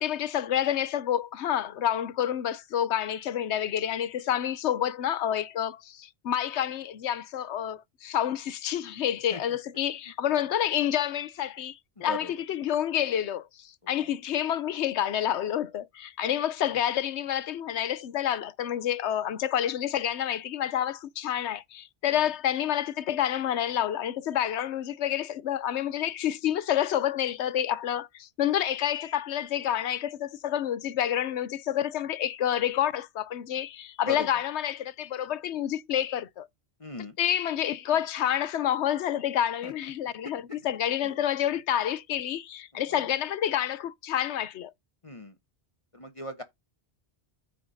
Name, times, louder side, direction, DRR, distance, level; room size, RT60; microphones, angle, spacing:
voice 1, 0.0-36.5 37.2-44.7, left 10 dB, 85° left, 1.0 m, -28 dB
voice 2, 12.0-12.3 13.8-14.1 22.1-22.2 34.0-34.4 36.8-37.2 39.6-39.7 40.5-40.6 41.0-41.2 42.7-43.1 45.0-45.4 45.9-46.4, left 1 dB, 30° left, 1.1 m, -39 dB
14.5 x 5.0 x 2.7 m
omnidirectional pair, 1.1 m